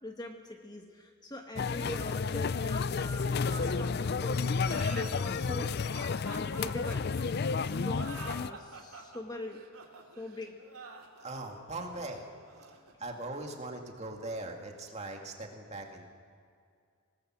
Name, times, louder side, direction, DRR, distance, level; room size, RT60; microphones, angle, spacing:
voice 1, 0.0-4.4 4.9-5.8 6.3-7.1 7.6-9.7 10.1-10.5, left 1 dB, 20° left, 3 dB, 1.3 m, -43 dB
sound 1, 1.6-8.5, left 5 dB, 45° left, 0.4 m, -31 dB
sound 2, 4.5-13.8, right 3 dB, 85° right, 2.6 m, -47 dB
voice 2, 11.2-12.3 12.7-16.0, right 2 dB, 30° right, 2 dB, 2.3 m, -40 dB
25.0 x 19.5 x 6.3 m, 2.2 s
head